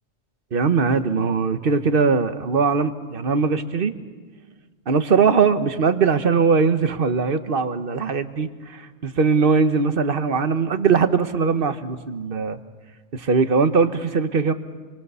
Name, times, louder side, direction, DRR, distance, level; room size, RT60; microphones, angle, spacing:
voice 1, 0.5-3.9 4.9-12.6 13.1-14.5, right 5 dB, 50° right, 10 dB, 1.3 m, -20 dB
29.0 x 24.0 x 6.9 m, 1.5 s
omnidirectional pair, 1.3 m